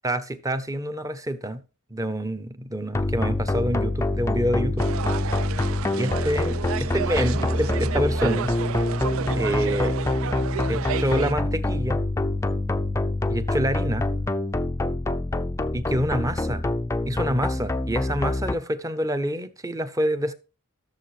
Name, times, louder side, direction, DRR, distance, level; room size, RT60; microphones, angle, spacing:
voice 1, 0.0-1.6 1.9-4.9 6.0-8.5 9.4-10.0 10.7-12.0 13.3-14.1 15.7-16.6 17.1-20.3, equal, 15° right, 0.8 m, -27 dB
sound 1, 2.9-18.6, left 2 dB, 15° left, 0.4 m, -26 dB
sound 2, 4.8-11.3, right 8 dB, 65° right, 0.4 m, -32 dB
14.0 x 6.9 x 3.2 m
head